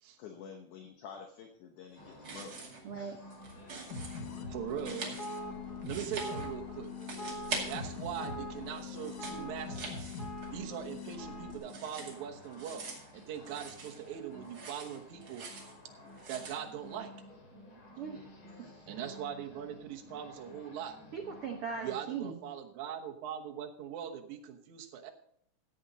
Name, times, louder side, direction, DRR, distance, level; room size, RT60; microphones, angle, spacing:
voice 1, 0.2-2.6 2.9-3.3 3.7-4.0 18.5-19.0, left 6 dB, 70° left, 4 dB, 2.3 m, -50 dB
sound 1, 2.0-21.9, left 1 dB, 40° left, 3.3 m, -53 dB
sound 2, 2.1-2.9 3.2-4.2 4.7-6.7 7.0-8.2 8.6-10.7 11.0-14.1 14.4-15.7 16.1-16.6, right 4 dB, 40° right, 2.8 m, -44 dB
voice 2, 2.8-3.2 18.0-18.2 21.1-22.4, right 6 dB, 85° right, 3 dB, 1.2 m, -39 dB
sound 3, 3.9-11.6, left 3 dB, 85° left, 0.8 m, -42 dB
voice 3, 4.5-5.2 5.8-6.9 7.6-10.1 10.5-12.9 13.1-15.5 16.3-17.1 18.9-21.0 21.8-25.1, right 9 dB, 65° right, 2 dB, 2.3 m, -41 dB
14.5 x 8.6 x 4.0 m, 0.66 s
omnidirectional pair, 4.0 m